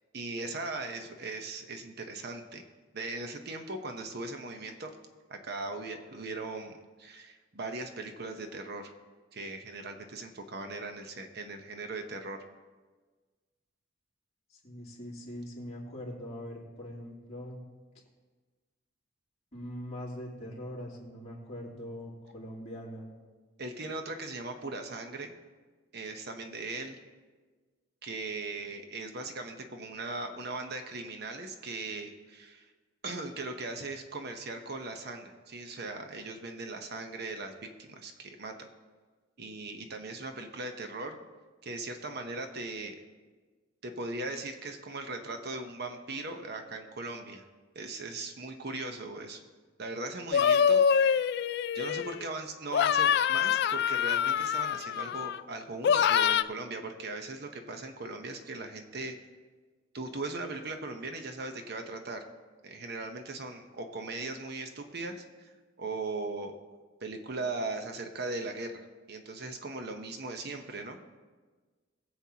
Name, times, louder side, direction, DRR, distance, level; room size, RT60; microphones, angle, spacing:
voice 1, 0.1-2.6 2.9-4.9 5.3-8.9 9.3-12.4 23.6-25.3 25.9-27.0 28.0-32.7 33.0-37.5 37.8-38.5 39.4-41.2 41.6-43.0 43.8-47.4 47.7-49.4 49.8-51.3 51.7-59.2 59.9-62.2 62.6-65.5 65.8-66.5 67.0-71.0, right 2 dB, 60° right, 5 dB, 0.9 m, -39 dB
voice 2, 14.5-17.6 19.5-23.1, equal, 35° left, -4 dB, 2.8 m, -42 dB
sound 1, 50.3-52.3 52.7-55.4 55.8-56.4, left 8 dB, 60° left, 0.3 m, -25 dB
21.5 x 7.8 x 2.9 m, 1.4 s
head